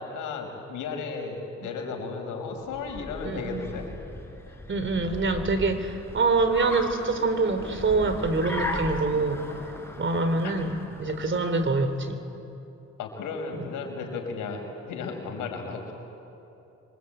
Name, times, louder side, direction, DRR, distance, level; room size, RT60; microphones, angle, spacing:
voice 1, 0.0-3.8 10.4-10.5 13.0-15.9, left 4 dB, 90° left, 3 dB, 5.2 m, -34 dB
Car, 2.6-12.1, left 1 dB, 10° left, 4.7 m, -38 dB
voice 2, 3.2-3.6 4.7-9.4 10.0-12.2 13.5-13.7, right 3 dB, 40° right, 9 dB, 3.3 m, -25 dB
26.5 x 24.5 x 9.0 m, 2.9 s
cardioid pair, 90°, 30 cm